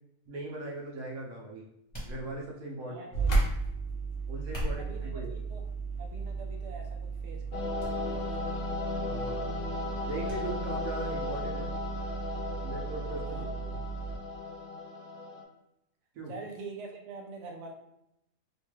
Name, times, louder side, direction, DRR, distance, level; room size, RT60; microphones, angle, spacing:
voice 1, 0.3-1.7 2.0-3.0 4.3-5.3 9.0-9.7 10.0-11.7 12.6-13.8 16.1-16.3, right 2 dB, 85° right, -2 dB, 1.2 m, -39 dB
sound 1, 1.9-2.7 4.3-5.1 5.8-6.2 6.7-6.8 7.8-8.0 8.2-8.3 10.3-10.4 10.8-10.9, equal, 20° left, 0.9 m, -38 dB
voice 2, 2.8-3.5 4.5-5.6 6.0-8.6 13.3-13.6 16.3-17.7, right 3 dB, 65° right, 1 dB, 0.8 m, -45 dB
sound 2, 3.1-14.2, right 4 dB, 45° left, 0.6 m, -35 dB
sound 3, 7.5-15.4, left 3 dB, 85° left, 1.1 m, -36 dB
3.1 x 2.2 x 3.0 m, 0.81 s
omnidirectional pair, 1.5 m